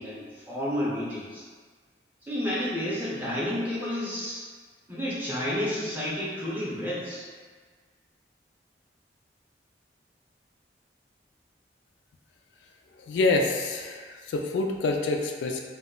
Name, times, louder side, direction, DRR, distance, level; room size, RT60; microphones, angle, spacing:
voice 1, 0.0-1.4 2.2-4.5 4.9-7.2, left 1 dB, 10° right, -8 dB, 0.6 m, -31 dB
voice 2, 13.0-15.6, left 3 dB, 90° left, 2 dB, 0.3 m, -27 dB
2.2 x 2.1 x 3.7 m, 1.5 s
head